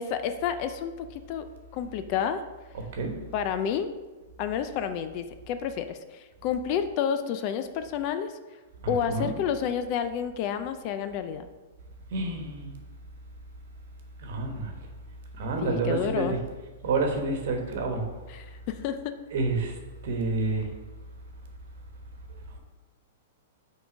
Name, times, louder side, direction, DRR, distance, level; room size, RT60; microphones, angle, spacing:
voice 1, 0.0-1.5 1.7-2.4 3.3-3.9 4.4-8.3 8.9-11.5 15.6-16.4 18.3-19.1, left 8 dB, 35° left, 9 dB, 0.3 m, -30 dB
voice 2, 8.8-9.3 12.1-12.7 14.2-14.7 15.4-16.4 16.8-18.0 19.3-19.7 20.0-20.6, right 3 dB, 60° right, 4 dB, 1.2 m, -28 dB
5.9 x 3.7 x 5.1 m, 1.2 s
supercardioid pair, 165°, 0 cm